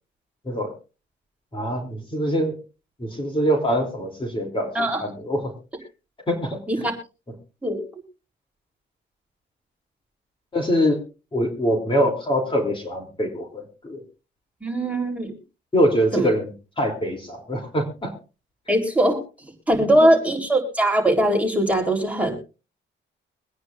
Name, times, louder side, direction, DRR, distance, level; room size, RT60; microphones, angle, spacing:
voice 1, 1.5-2.6 3.0-5.6 6.3-6.6 10.5-11.0 11.3-14.0 15.7-16.5 16.8-18.2 19.8-19.9, equal, 25° left, 2 dB, 3.2 m, -24 dB
voice 2, 14.6-15.3 16.1-16.3 18.7-19.2 19.7-22.4, right 1 dB, 5° right, 1 dB, 3.7 m, -20 dB
24.0 x 9.5 x 2.6 m, 0.32 s
cardioid pair, 90°, 20 cm